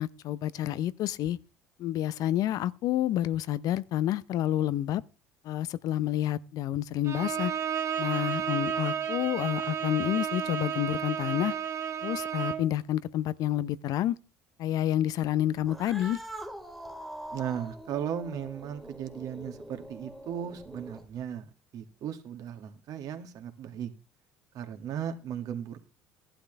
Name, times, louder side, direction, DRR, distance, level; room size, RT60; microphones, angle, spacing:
voice 1, 0.0-1.4 1.8-5.0 5.4-7.5 8.0-11.5 12.0-14.2 14.6-16.2, left 12 dB, 60° left, 0.6 m, -29 dB
Bowed string instrument, 7.0-12.7, right 8 dB, 45° right, 2.2 m, -32 dB
Cat, 15.6-21.2, right 1 dB, ahead, 2.1 m, -44 dB
voice 2, 17.3-23.9 24.5-25.8, right 9 dB, 60° right, 2.1 m, -36 dB
15.0 x 11.5 x 3.3 m
hypercardioid pair, 75°, 7 cm